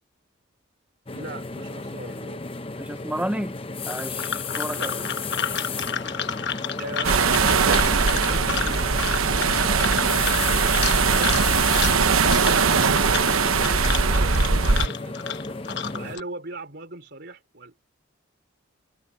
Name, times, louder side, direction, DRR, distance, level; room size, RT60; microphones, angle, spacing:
sound 1, 1.1-16.2, left 4 dB, 25° left, 0.9 m, -34 dB
voice 1, 1.1-2.4 4.7-5.7 6.3-10.7 11.1-15.2 15.9-17.8, right 2 dB, 50° right, 4.2 m, -39 dB
voice 2, 2.8-3.5 3.9-4.9, right 1 dB, 5° right, 0.7 m, -31 dB
sound 2, 3.8-16.2, left 7 dB, 55° left, 1.1 m, -32 dB
sound 3, 7.0-14.9, right 5 dB, 85° right, 1.1 m, -21 dB
head